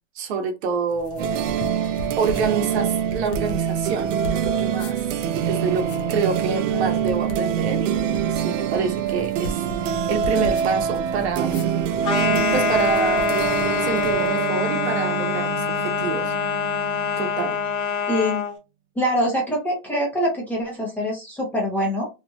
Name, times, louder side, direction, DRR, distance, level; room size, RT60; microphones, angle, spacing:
voice 1, 0.2-1.3 2.2-5.0 5.5-11.7 12.5-13.3 13.8-16.4 17.2-17.6, right 5 dB, 60° right, 0.9 m, -27 dB
sound 1, 0.9-14.4, left 2 dB, 45° left, 0.6 m, -37 dB
sound 2, 1.2-17.8, right 9 dB, 80° right, 0.5 m, -25 dB
sound 3, 12.0-18.5, left 6 dB, 30° left, 1.2 m, -25 dB
voice 2, 18.1-18.4 18.9-22.1, equal, 5° left, 0.7 m, -24 dB
3.0 x 2.6 x 2.3 m
supercardioid pair, 160°, 36 cm